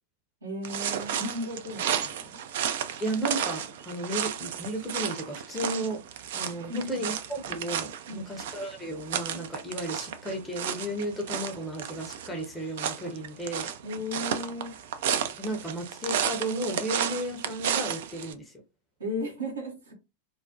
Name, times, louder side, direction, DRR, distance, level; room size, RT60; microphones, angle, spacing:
voice 1, 0.4-2.4 6.7-7.0 8.1-8.3 13.8-14.8 19.0-19.9, left 1 dB, 70° right, -1 dB, 0.8 m, -35 dB
sound 1, 0.6-18.3, right 9 dB, 55° right, 0.3 m, -33 dB
voice 2, 3.0-6.0 6.3-13.7 15.4-18.6, right 1 dB, 10° left, 1 dB, 0.6 m, -34 dB
2.3 x 2.0 x 2.6 m, 0.27 s
figure-of-eight pair, 90°, 0 cm